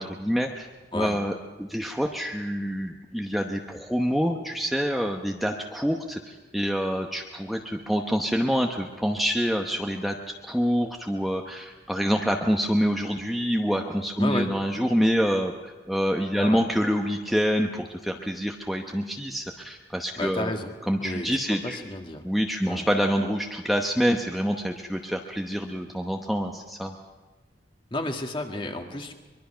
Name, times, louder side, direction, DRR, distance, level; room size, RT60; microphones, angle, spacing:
voice 1, 0.0-10.2 10.5-20.5 20.9-21.8 22.2-26.9, equal, ahead, 2 dB, 0.9 m, -26 dB
voice 2, 14.2-14.5 16.3-16.6 20.2-22.2 22.6-22.9 27.9-29.1, left 1 dB, 30° left, 4 dB, 1.8 m, -32 dB
23.5 x 22.5 x 5.7 m, 1.3 s
head